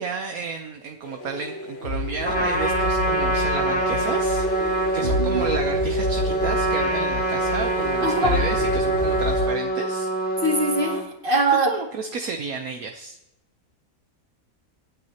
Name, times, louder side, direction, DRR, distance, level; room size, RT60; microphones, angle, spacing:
voice 1, 0.0-10.1 11.3-11.4 11.6-13.2, right 5 dB, 65° right, 5 dB, 1.3 m, -32 dB
sound 1, 1.0-9.5, left 2 dB, 55° left, 3.9 m, -29 dB
Trumpet, 2.2-11.0, right 2 dB, 35° left, 3.3 m, -25 dB
voice 2, 5.0-5.4 8.0-8.4 10.4-11.7, right 2 dB, 30° right, 1 dB, 2.3 m, -22 dB
24.5 x 9.4 x 2.9 m, 0.89 s
omnidirectional pair, 1.8 m